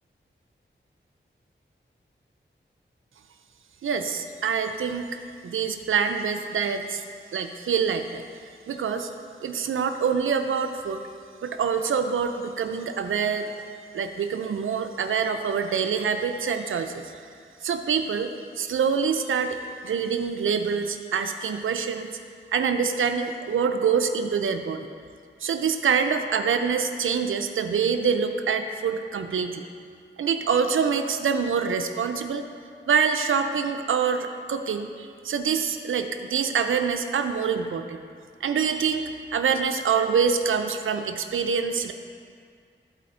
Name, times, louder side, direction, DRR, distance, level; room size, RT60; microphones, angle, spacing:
voice 1, 3.8-5.1 5.4-7.0 7.3-8.2 8.7-9.1 9.4-11.0 11.4-13.5 13.9-17.1 17.6-18.3 18.6-19.6 19.8-22.1 22.5-24.9 25.4-29.6 30.2-32.4 32.9-38.0 38.4-41.9, right 6 dB, 90° right, 7 dB, 0.5 m, -25 dB
11.0 x 4.2 x 4.3 m, 2.2 s
cardioid pair, 50°, 20 cm